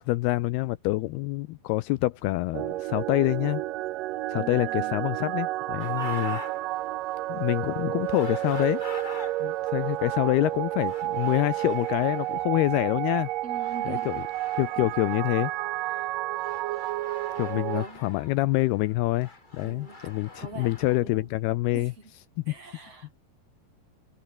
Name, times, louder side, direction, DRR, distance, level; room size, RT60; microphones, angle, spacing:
voice 1, 0.0-3.6 4.3-6.4 7.3-8.8 9.4-13.3 13.9-14.2 14.6-15.5 17.4-21.9 22.5-22.6, left 19 dB, 80° left, 2.4 m, -26 dB
sound 1, 2.5-17.8, right 16 dB, 85° right, 1.9 m, -31 dB
voice 2, 4.3-5.0 6.1-6.2 13.4-14.2 17.5-18.0 19.6-20.1 20.4-20.7 21.0-21.3 21.7-21.9 22.5-23.1, right 4 dB, 35° right, 5.7 m, -42 dB
sound 2, 5.8-21.0, left 2 dB, 15° left, 1.8 m, -46 dB
omnidirectional pair, 4.9 m